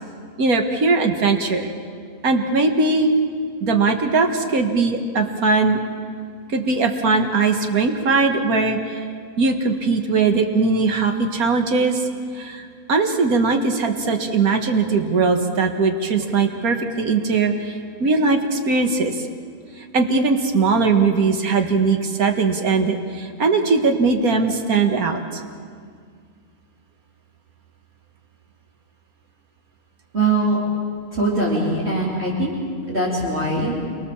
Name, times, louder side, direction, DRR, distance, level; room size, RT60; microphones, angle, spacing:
voice 1, 0.4-1.7 2.2-3.1 3.6-5.8 6.5-9.0 9.4-12.1 12.3-19.2 19.8-25.4, right 4 dB, 75° right, 5 dB, 2.2 m, -20 dB
voice 2, 30.1-30.6 31.1-32.5 32.9-33.7, right 2 dB, 45° right, -9 dB, 4.5 m, -21 dB
28.5 x 23.5 x 7.2 m, 2.1 s
omnidirectional pair, 1.6 m